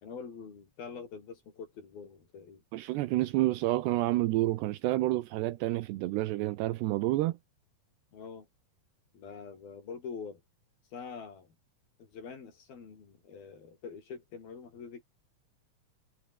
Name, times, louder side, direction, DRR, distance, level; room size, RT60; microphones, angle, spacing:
voice 1, 0.0-2.6 8.1-8.5 9.1-10.4 10.9-11.5 12.0-15.0, left 5 dB, 55° left, 6.1 m, -45 dB
voice 2, 2.7-7.4, right 17 dB, 75° right, 2.7 m, -29 dB
omnidirectional pair, 5.4 m